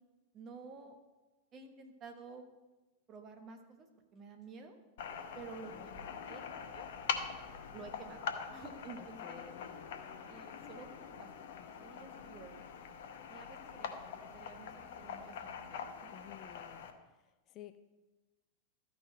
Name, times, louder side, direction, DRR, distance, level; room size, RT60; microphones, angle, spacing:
voice 1, 0.3-1.0 1.5-2.4 3.1-4.8 5.3-6.4 6.7-6.9 7.7-9.5 10.3-12.6 13.3-16.1, right 4 dB, 30° right, 5 dB, 1.3 m, -52 dB
sound 1, 5.0-16.9, left 7 dB, 55° left, 0.8 m, -44 dB
voice 2, 9.0-9.9 16.1-16.9 17.5-17.8, left 11 dB, 35° left, 11 dB, 0.4 m, -53 dB
13.5 x 4.6 x 5.0 m, 1.1 s
figure-of-eight pair, 90°, 0 cm